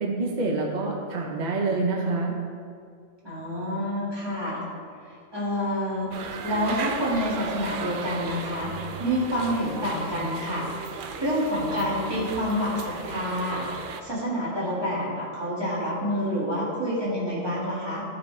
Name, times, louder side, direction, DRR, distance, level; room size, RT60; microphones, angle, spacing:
voice 1, 0.0-2.3, right 3 dB, 40° right, 0 dB, 0.8 m, -27 dB
voice 2, 3.2-4.6 5.3-6.1 6.4-8.7 9.0-10.6 11.2-13.7 14.0-18.0, equal, 20° right, -8 dB, 2.0 m, -28 dB
sound 1, 6.1-14.0, right 5 dB, 80° right, 0.4 m, -36 dB
12.5 x 4.2 x 3.3 m, 2.3 s
omnidirectional pair, 1.4 m